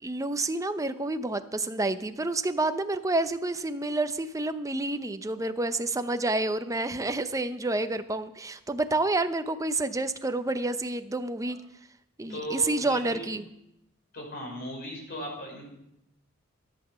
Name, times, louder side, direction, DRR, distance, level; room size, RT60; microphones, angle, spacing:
voice 1, 0.0-11.6 12.2-13.4, right 2 dB, 15° right, 10 dB, 0.7 m, -29 dB
voice 2, 12.3-13.3 14.1-15.7, equal, 45° left, -1 dB, 5.4 m, -37 dB
14.0 x 8.9 x 6.9 m, 0.82 s
head